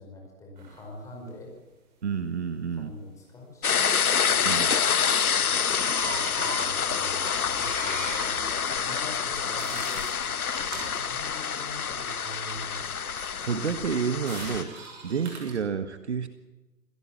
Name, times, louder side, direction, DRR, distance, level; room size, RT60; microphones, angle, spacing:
voice 1, 0.0-1.5 2.7-3.9 6.0-12.9, left 1 dB, 5° left, 0 dB, 5.2 m, -44 dB
sound 1, 0.6-0.8 3.7-3.8 4.1-5.1 5.7-11.0 13.1-15.6, right 4 dB, 30° right, 6.4 m, -41 dB
voice 2, 2.0-2.9 4.4-4.7 13.4-14.7 15.0-16.3, right 6 dB, 45° right, 9 dB, 1.8 m, -29 dB
sound 2, 3.6-14.6, left 7 dB, 70° left, 1.1 m, -27 dB
27.5 x 17.5 x 7.5 m, 1.1 s
figure-of-eight pair, 155°, 46 cm